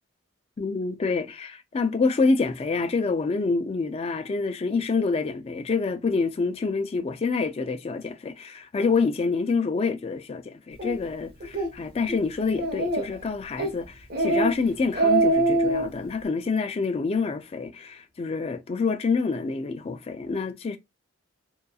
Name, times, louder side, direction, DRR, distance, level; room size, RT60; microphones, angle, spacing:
voice 1, 0.6-20.8, left 4 dB, 30° left, 0.3 m, -27 dB
Speech, 10.8-11.0 11.4-11.7 12.1-12.2 12.6-13.2 13.6-13.8 14.1-14.5 14.8-15.9, right 2 dB, 50° right, 0.8 m, -23 dB
2.7 x 2.3 x 2.3 m
head